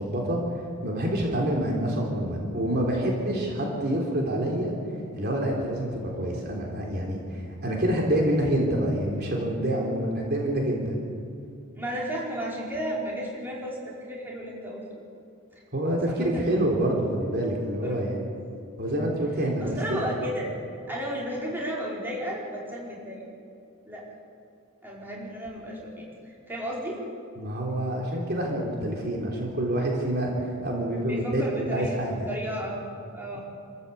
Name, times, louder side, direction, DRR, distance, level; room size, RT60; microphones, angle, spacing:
voice 1, 0.0-4.7 5.1-11.0 15.7-18.3 18.8-20.1 27.4-32.3, right 1 dB, 45° right, -1 dB, 3.5 m, -27 dB
voice 2, 11.7-15.0 16.1-16.5 17.8-18.0 19.6-20.5 20.9-23.2 23.9-24.0 24.8-27.0 31.1-32.0 32.3-32.9 33.1-33.4, equal, 10° right, -4 dB, 4.6 m, -33 dB
28.0 x 14.0 x 8.4 m, 2.5 s
head